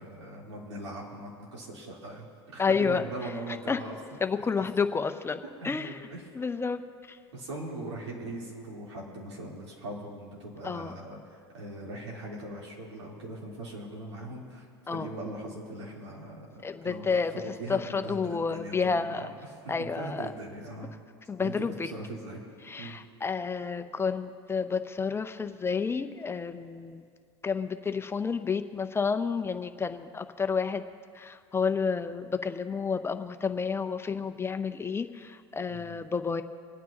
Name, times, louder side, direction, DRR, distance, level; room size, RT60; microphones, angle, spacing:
voice 1, 0.0-3.9 5.6-6.2 7.3-19.3 19.6-20.9 21.4-21.5 21.8-22.4 22.8-23.0 35.7-35.9, right 1 dB, 85° right, -4 dB, 3.7 m, -40 dB
voice 2, 2.6-3.3 3.7-3.8 4.2-6.0 6.3-6.8 7.1-7.2 10.6-11.0 14.9-15.1 16.6-17.3 17.7-19.3 19.7-20.3 21.3-21.9 22.6-27.0 27.4-30.8 31.1-36.4, left 5 dB, 15° left, 9 dB, 0.6 m, -30 dB
26.0 x 9.3 x 2.9 m, 2.2 s
hypercardioid pair, 95°, 14 cm